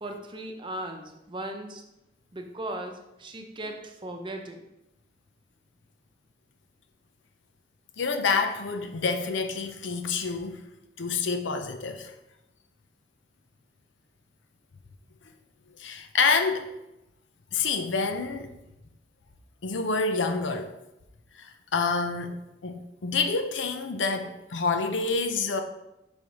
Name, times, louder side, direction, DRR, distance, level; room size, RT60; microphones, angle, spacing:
voice 1, 0.0-1.8 2.3-2.9 3.2-4.6, right 1 dB, 25° right, 0.8 m, -37 dB
voice 2, 8.0-10.6 11.0-12.1 15.8-16.7 17.5-18.5 19.6-20.7 21.4-22.4 22.6-25.6, left 4 dB, 85° left, 0.7 m, -27 dB
5.2 x 4.7 x 5.3 m
head